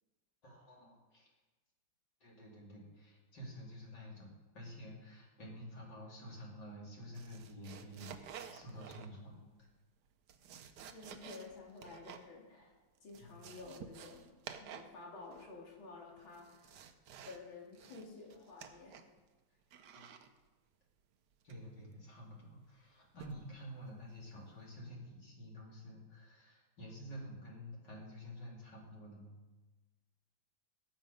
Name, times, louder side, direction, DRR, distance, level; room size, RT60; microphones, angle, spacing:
voice 1, 0.4-1.3 2.2-4.3 4.5-9.7 13.2-13.3 19.9-20.1 21.4-29.3, equal, 60° left, -3 dB, 3.3 m, -50 dB
sound 1, 7.1-9.4 10.1-12.3 12.6-12.7 13.0-15.0 15.2-15.7 16.2-17.4 17.7-19.2 19.7-20.3 21.5-21.8 23.2-23.5 24.0-24.2, right 8 dB, 65° right, 1.2 m, -52 dB
voice 2, 10.9-12.7 13.0-14.3 14.6-16.8 17.2-19.1, left 3 dB, 80° left, -2 dB, 3.2 m, -52 dB
17.5 x 7.4 x 5.2 m, 1.2 s
omnidirectional pair, 2.2 m